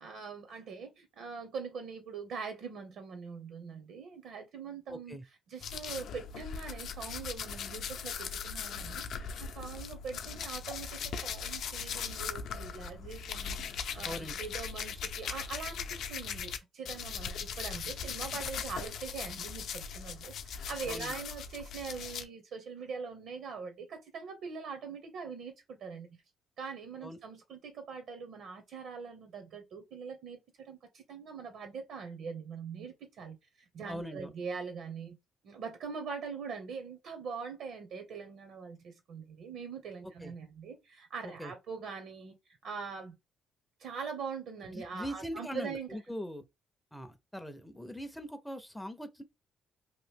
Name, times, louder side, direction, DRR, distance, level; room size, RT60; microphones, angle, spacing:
voice 1, 0.0-5.2 5.5-9.0 9.4-26.1 26.6-35.2 35.4-42.3 42.6-43.1 43.8-45.9, right 5 dB, 70° right, 0.7 m, -42 dB
voice 2, 4.9-5.2 14.0-14.4 20.9-21.1 27.0-27.2 33.9-34.3 40.2-40.3 41.2-41.5 44.7-46.4 46.9-49.2, equal, 5° left, 0.4 m, -41 dB
sound 1, 5.6-16.6 16.8-22.2, left 6 dB, 65° left, 0.5 m, -39 dB
2.9 x 2.5 x 3.3 m
cardioid pair, 130°, 0 cm